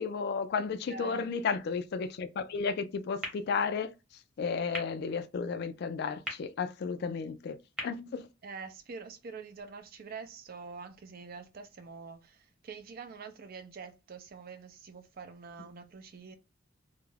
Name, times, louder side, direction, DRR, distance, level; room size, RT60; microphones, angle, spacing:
voice 1, 0.0-3.9 4.4-7.6 7.8-8.3, left 5 dB, 55° left, 0.3 m, -33 dB
voice 2, 0.8-1.3 8.4-16.4, right 5 dB, 50° right, 0.4 m, -46 dB
sound 1, 3.2-9.1, left 1 dB, 5° right, 0.8 m, -46 dB
2.3 x 2.1 x 3.2 m
head